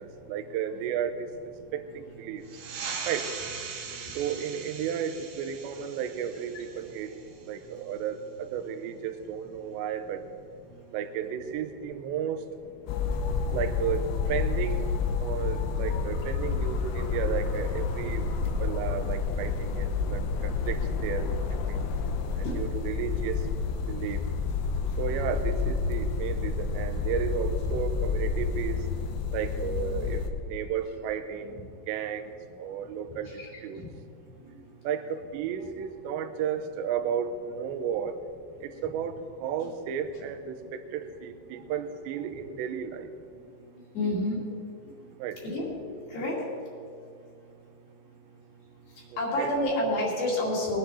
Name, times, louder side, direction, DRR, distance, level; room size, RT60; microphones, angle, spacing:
voice 1, 0.0-2.4 3.1-3.3 4.2-7.1 7.5-10.2 10.9-12.4 13.5-14.9 15.2-18.3 18.6-21.4 21.7-21.9 22.4-23.5 23.9-24.3 25.0-28.9 29.3-32.3 32.6-33.8 34.8-38.2 38.6-43.1 45.2-45.4 49.1-49.6, right 8 dB, 80° right, 7 dB, 2.9 m, -33 dB
sound 1, 2.4-7.6, right 5 dB, 65° right, 2.1 m, -40 dB
sound 2, 12.9-30.3, left 5 dB, 80° left, 3.1 m, -29 dB
voice 2, 43.9-44.4 45.4-45.6 46.1-46.4 49.2-50.8, left 1 dB, 60° left, -5 dB, 4.1 m, -28 dB
20.5 x 10.0 x 4.2 m, 2.4 s
omnidirectional pair, 5.2 m